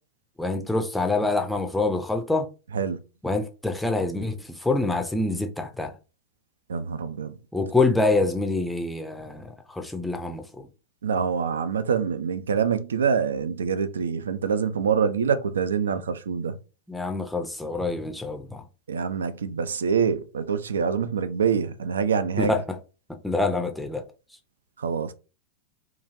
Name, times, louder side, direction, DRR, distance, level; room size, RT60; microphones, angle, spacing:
voice 1, 0.4-2.5 3.2-5.9 7.5-10.7 16.9-18.6 22.4-22.8 23.2-24.0, left 2 dB, 5° left, 0.4 m, -26 dB
voice 2, 6.7-7.4 11.0-16.6 18.9-22.6 24.8-25.1, right 6 dB, 70° right, 0.3 m, -25 dB
3.0 x 2.3 x 2.5 m
figure-of-eight pair, 90°, 0 cm